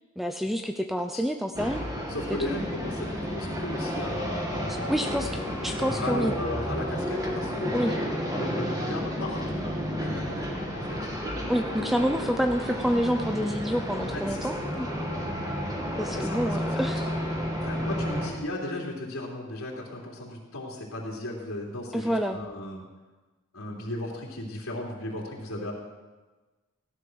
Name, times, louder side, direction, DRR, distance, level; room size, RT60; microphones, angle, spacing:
voice 1, 0.2-1.8 2.3-2.6 4.9-6.3 7.7-7.9 11.5-14.9 16.0-17.1 21.9-22.4, equal, ahead, 5 dB, 0.6 m, -28 dB
sound 1, 1.5-18.3, equal, 15° right, 2.5 m, -31 dB
voice 2, 2.1-5.5 5.8-7.9 8.3-9.7 10.0-11.0 12.2-12.3 14.1-14.6 16.1-17.2 17.6-22.8 23.5-25.7, left 1 dB, 85° left, -4 dB, 3.2 m, -36 dB
16.5 x 12.0 x 6.2 m, 1.2 s
head